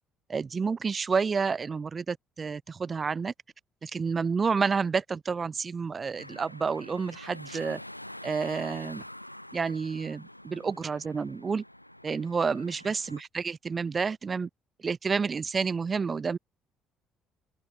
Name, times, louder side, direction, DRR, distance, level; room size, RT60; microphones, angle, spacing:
voice 1, 0.3-3.3 3.8-7.8 8.2-9.0 9.5-11.6 12.0-14.5 14.8-16.4, right 5 dB, 30° right, 0.8 m, -29 dB
sound 1, 6.2-13.2, left 1 dB, 90° left, 0.8 m, -46 dB
open air
figure-of-eight pair, 50°, 0 cm